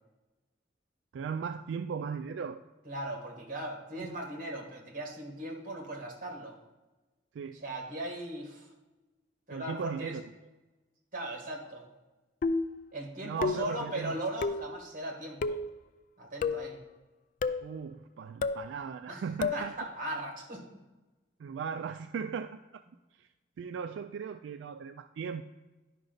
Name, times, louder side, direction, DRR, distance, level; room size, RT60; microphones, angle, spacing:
voice 1, 1.1-2.6 4.0-4.2 7.3-7.6 9.5-10.2 13.2-14.2 17.6-19.7 21.4-22.8 23.2-23.3 23.6-25.4, right 6 dB, 80° right, 9 dB, 0.3 m, -37 dB
voice 2, 2.8-6.6 7.5-8.7 9.5-10.2 11.1-11.9 12.9-15.6 16.2-16.8 19.1-19.2 19.5-20.6, right 1 dB, 50° right, 2 dB, 1.5 m, -38 dB
sound 1, 12.4-12.8 13.4-13.8 14.4-14.7 15.4-15.7 16.4-16.7 17.4-17.7 18.4-18.7 19.4-19.7, left 4 dB, 45° left, 0.3 m, -31 dB
11.0 x 5.2 x 3.9 m, 1.1 s
head